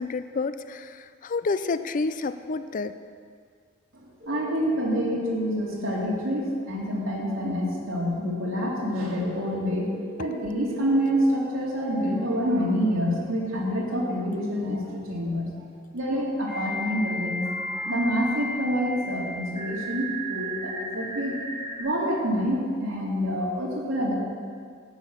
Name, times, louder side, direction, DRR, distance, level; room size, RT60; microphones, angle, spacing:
voice 1, 0.0-2.9, left 3 dB, 40° left, 12 dB, 0.4 m, -29 dB
sound 1, 4.2-5.1 9.1-11.1 13.7-13.8 16.5-21.8, equal, 30° right, 3.1 m, -35 dB
voice 2, 4.3-9.9 10.2-15.5 15.9-21.4 21.8-24.1, equal, 85° right, -3 dB, 2.7 m, -27 dB
11.0 x 6.2 x 8.8 m, 2.1 s
head